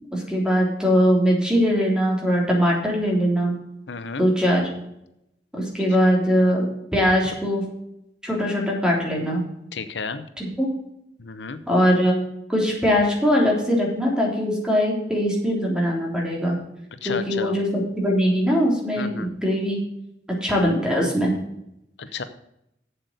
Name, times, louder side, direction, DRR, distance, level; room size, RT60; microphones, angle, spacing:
voice 1, 0.1-3.6 4.2-4.6 5.5-6.6 6.9-7.6 8.2-9.4 10.4-10.7 11.7-12.2 12.5-16.6 17.0-17.7 17.9-19.8 20.3-21.3, equal, 5° right, -2 dB, 3.3 m, -21 dB
voice 2, 3.9-4.3 9.7-10.3 11.2-11.6 17.0-17.6 19.0-19.3 22.0-22.2, left 4 dB, 80° left, 10 dB, 0.8 m, -32 dB
8.0 x 7.9 x 6.6 m, 0.81 s
head